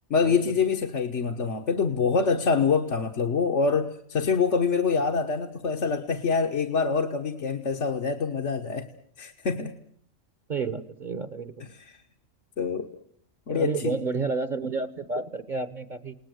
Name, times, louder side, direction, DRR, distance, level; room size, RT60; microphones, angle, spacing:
voice 1, 0.1-8.9 9.2-9.7 11.8-12.0 12.6-12.9 13.5-14.0, left 5 dB, 65° left, 3 dB, 1.6 m, -25 dB
voice 2, 10.5-11.5 13.5-16.2, right 4 dB, 40° right, 13 dB, 1.2 m, -30 dB
29.5 x 19.0 x 7.9 m, 0.65 s
omnidirectional pair, 1.3 m